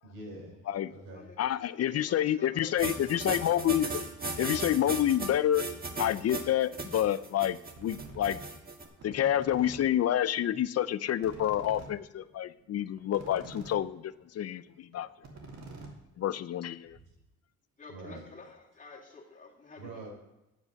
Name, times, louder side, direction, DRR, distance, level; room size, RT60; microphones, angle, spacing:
voice 1, 0.0-1.3 16.8-17.0 17.9-18.2 19.8-20.1, right 2 dB, 90° right, 0 dB, 4.6 m, -45 dB
voice 2, 1.4-3.9 4.4-5.6 6.0-8.4 9.0-15.1 16.2-17.0, left 11 dB, 55° left, 15 dB, 0.5 m, -28 dB
voice 3, 1.9-2.8 3.1-3.7 17.8-20.0, left 3 dB, 25° left, -1 dB, 2.8 m, -50 dB
sound 1, 2.8-8.8, right 3 dB, 30° right, 1.9 m, -36 dB
sound 2, 7.7-8.4 8.8-9.8 10.2-10.3 10.5-10.6 10.8-10.9 11.2-13.8 14.2-14.3 14.7-14.8 14.9-16.3, right 3 dB, 60° right, 2.9 m, -47 dB
9.6 x 8.0 x 6.4 m, 0.95 s
cardioid pair, 90°, 30 cm